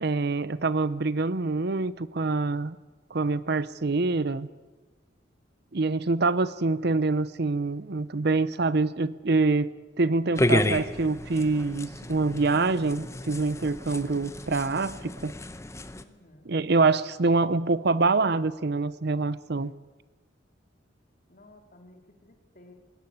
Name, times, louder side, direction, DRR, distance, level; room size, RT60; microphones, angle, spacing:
voice 1, 0.0-2.8 3.1-4.5 5.7-9.7 10.0-15.3 16.5-19.7, right 3 dB, 60° right, 17 dB, 0.7 m, -25 dB
sound 1, 10.4-16.0, left 1 dB, 15° left, 0.9 m, -31 dB
voice 2, 15.9-16.5 21.3-22.7, left 1 dB, 50° left, 4 dB, 3.1 m, -55 dB
21.0 x 17.5 x 8.7 m, 1.2 s
head